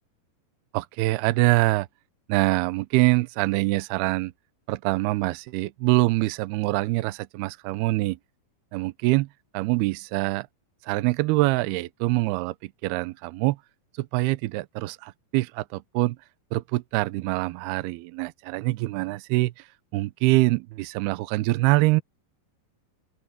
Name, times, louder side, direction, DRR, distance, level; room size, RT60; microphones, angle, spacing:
voice 1, 0.7-1.9 2.3-4.3 4.7-8.2 8.7-9.3 9.5-10.5 10.8-13.6 14.0-16.2 16.5-19.5 19.9-22.0, right 20 dB, 85° right, 2.5 m, -24 dB
open air
omnidirectional pair, 4.8 m